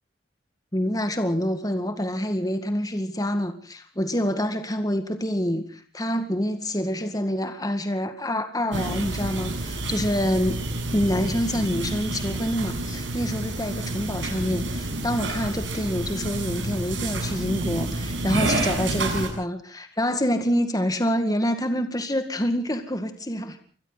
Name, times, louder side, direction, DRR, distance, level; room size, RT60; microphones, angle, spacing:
voice 1, 0.7-10.6 10.9-23.6, equal, 20° left, 8 dB, 1.9 m, -26 dB
sound 1, 8.7-19.3, right 2 dB, 80° right, 7.7 m, -29 dB
27.5 x 24.5 x 4.1 m, 0.42 s
head